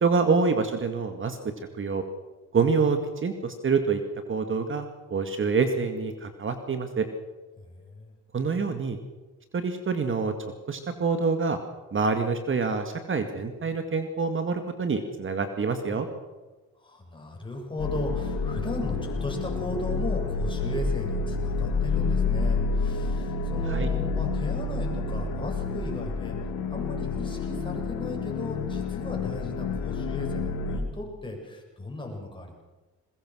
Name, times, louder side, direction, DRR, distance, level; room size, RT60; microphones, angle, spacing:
voice 1, 0.0-1.4 1.8-2.0 2.5-4.0 4.3-4.9 5.1-7.1 8.3-9.0 9.5-10.3 10.7-11.6 11.9-16.1 23.7-23.9, right 4 dB, 40° right, 7 dB, 2.2 m, -26 dB
voice 2, 7.6-8.1 16.8-26.4 26.7-32.5, left 1 dB, 15° left, 0 dB, 7.3 m, -36 dB
sound 1, 17.8-30.8, left 4 dB, 85° left, 2.7 m, -29 dB
21.5 x 21.0 x 6.4 m, 1.2 s
cardioid pair, 90°, 30 cm